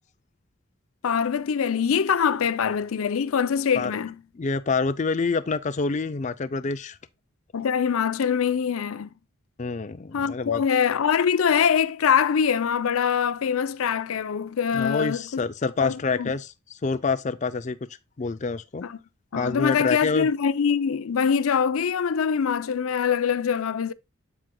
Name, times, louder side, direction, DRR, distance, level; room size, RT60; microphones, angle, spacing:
voice 1, 1.0-4.1 7.5-9.1 10.1-15.4 15.8-16.3 18.8-19.0 19.3-23.9, left 7 dB, 85° left, 0.5 m, -23 dB
voice 2, 4.3-7.0 9.6-10.6 14.7-17.8 18.2-18.8 19.3-20.3, left 4 dB, 35° left, 0.4 m, -27 dB
7.6 x 7.3 x 2.2 m
head